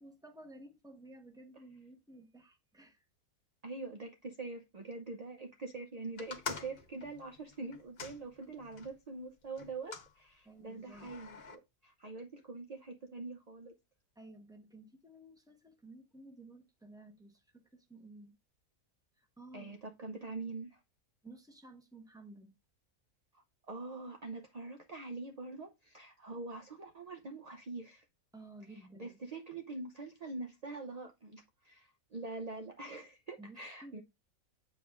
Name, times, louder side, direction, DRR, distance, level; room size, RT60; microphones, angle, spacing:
voice 1, 0.0-3.0 10.4-11.1 14.2-18.4 19.2-19.7 21.2-22.6 28.3-29.2 33.4-34.0, right 2 dB, 5° right, 0.9 m, -54 dB
voice 2, 3.6-13.8 19.5-20.8 23.3-28.1 28.7-34.0, right 3 dB, 50° right, 0.4 m, -44 dB
sound 1, 6.2-8.9 9.6-10.1 10.9-11.6, left 5 dB, 50° left, 1.2 m, -45 dB
8.1 x 7.1 x 2.4 m
omnidirectional pair, 1.5 m